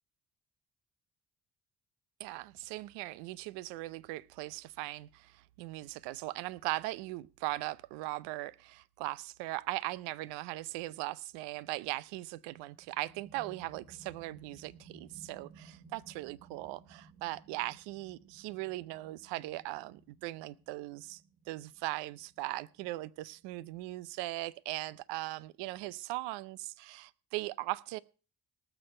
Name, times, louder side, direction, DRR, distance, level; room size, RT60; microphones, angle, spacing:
voice 1, 2.2-21.2 21.5-28.0, right 18 dB, 85° right, 0.7 m, -39 dB
sound 1, 12.7-24.0, right 4 dB, 60° right, 5.7 m, -58 dB
19.0 x 6.9 x 4.4 m
hypercardioid pair, 45°, 41 cm